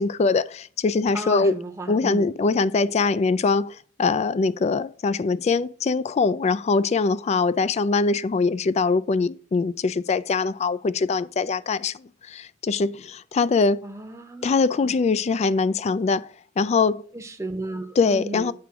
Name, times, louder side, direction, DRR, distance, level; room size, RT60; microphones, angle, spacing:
voice 1, 0.0-1.5 1.9-13.8 14.4-16.3 16.6-17.1 18.0-18.5, left 4 dB, 35° left, 0.3 m, -22 dB
voice 2, 1.1-2.3 13.8-14.5 17.1-18.5, right 1 dB, 15° right, 0.9 m, -33 dB
7.5 x 3.5 x 5.9 m
head